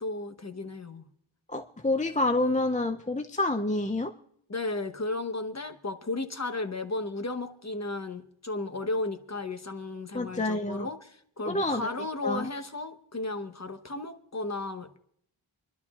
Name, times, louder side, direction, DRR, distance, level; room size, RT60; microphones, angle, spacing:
voice 1, 0.0-1.0 4.5-15.0, left 2 dB, 35° left, 8 dB, 1.0 m, -34 dB
voice 2, 1.5-4.1 10.1-10.9 11.4-11.9 12.2-12.5, left 2 dB, 15° left, 6 dB, 0.4 m, -28 dB
28.5 x 11.5 x 2.4 m, 0.66 s
wide cardioid pair, 65°, 48 cm